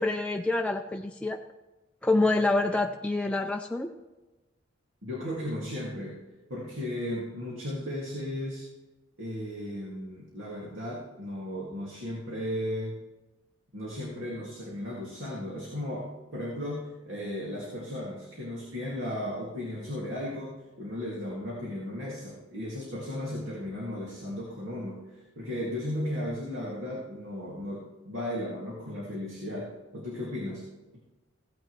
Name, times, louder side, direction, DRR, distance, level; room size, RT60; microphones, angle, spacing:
voice 1, 0.0-1.4 2.0-3.9, left 2 dB, 5° left, 3 dB, 0.3 m, -27 dB
voice 2, 5.0-6.1 6.5-8.7 9.2-12.9 13.7-30.6, left 1 dB, 85° right, -3 dB, 2.2 m, -35 dB
15.5 x 9.1 x 3.1 m, 1.1 s
head